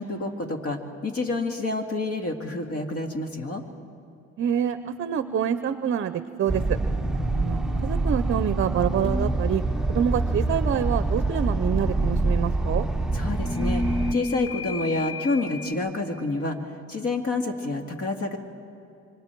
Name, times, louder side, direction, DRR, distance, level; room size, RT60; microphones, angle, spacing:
voice 1, 0.0-3.6 13.1-13.8 14.1-16.6 16.9-18.4, left 2 dB, 55° left, 4 dB, 2.2 m, -28 dB
voice 2, 4.4-6.8 7.4-9.6 9.9-12.9, right 9 dB, 45° right, 12 dB, 0.6 m, -26 dB
sound 1, 4.5-9.3 13.1-15.7, left 1 dB, 20° left, 5.3 m, -35 dB
sound 2, 6.5-14.1, right 2 dB, ahead, 0.7 m, -25 dB
26.5 x 25.0 x 4.6 m, 2.7 s
cardioid pair, 105°, 29 cm